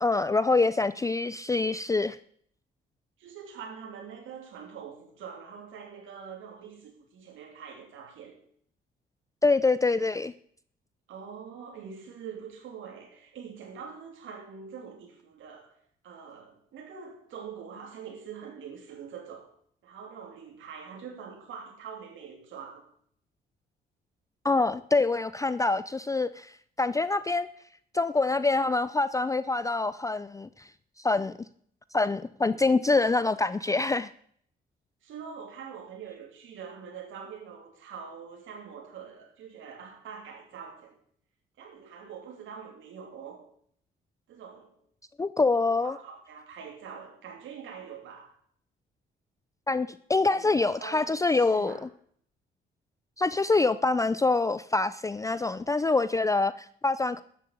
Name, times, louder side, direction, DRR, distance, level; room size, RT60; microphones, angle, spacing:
voice 1, 0.0-2.2 9.4-10.3 24.4-27.5 27.9-30.7 31.0-31.3 31.9-34.1 45.2-45.9 49.7-51.7 53.2-57.2, left 3 dB, 15° left, 0.4 m, -25 dB
voice 2, 3.2-8.4 11.1-15.7 16.0-19.5 19.8-22.9 35.0-41.0 41.6-43.4 44.3-44.8 45.8-48.4 50.3-51.8, right 6 dB, 80° right, 2.9 m, -44 dB
12.5 x 7.8 x 8.6 m
cardioid pair, 90°, 20 cm